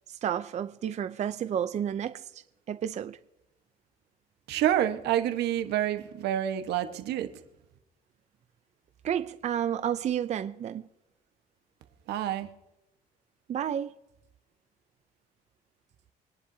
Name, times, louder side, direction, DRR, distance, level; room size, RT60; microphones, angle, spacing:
voice 1, 0.1-3.2 9.0-10.8 13.5-14.0, right 9 dB, 40° right, 0.5 m, -31 dB
voice 2, 4.5-7.3 12.1-12.5, right 11 dB, 80° right, 1.3 m, -28 dB
25.0 x 10.5 x 2.8 m
cardioid pair, 110°, 17 cm